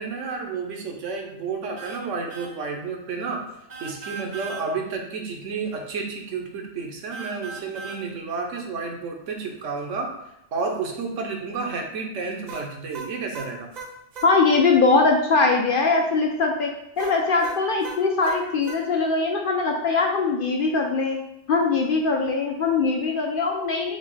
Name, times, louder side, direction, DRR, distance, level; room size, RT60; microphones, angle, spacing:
voice 1, 0.0-3.4 3.8-10.1 10.5-13.7, right 4 dB, 80° right, 2 dB, 1.1 m, -31 dB
sound 1, 1.8-2.0 2.3-2.5 3.7-4.7 7.1-8.0 12.5-14.3 17.0-18.8, right 4 dB, 45° right, 0.6 m, -37 dB
voice 2, 14.2-21.2 21.5-24.0, left 3 dB, 60° left, 1 dB, 0.6 m, -21 dB
4.0 x 3.4 x 3.7 m, 0.81 s
omnidirectional pair, 1.3 m